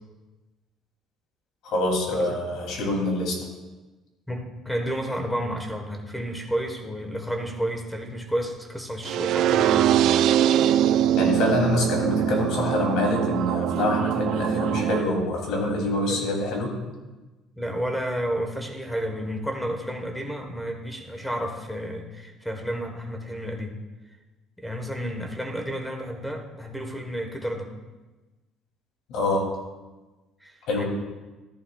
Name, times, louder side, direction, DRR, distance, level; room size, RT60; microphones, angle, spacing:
voice 1, 1.6-3.4 11.2-16.7 29.1-29.5 30.7-30.9, left 1 dB, 70° left, 0 dB, 2.8 m, -25 dB
voice 2, 4.3-10.0 16.0-16.2 17.6-23.8 24.6-27.7 30.4-30.8, equal, ahead, 3 dB, 1.3 m, -31 dB
sound 1, 9.0-15.0, right 11 dB, 60° right, 0.3 m, -22 dB
13.5 x 11.0 x 2.4 m, 1.2 s
cardioid pair, 150°, 0 cm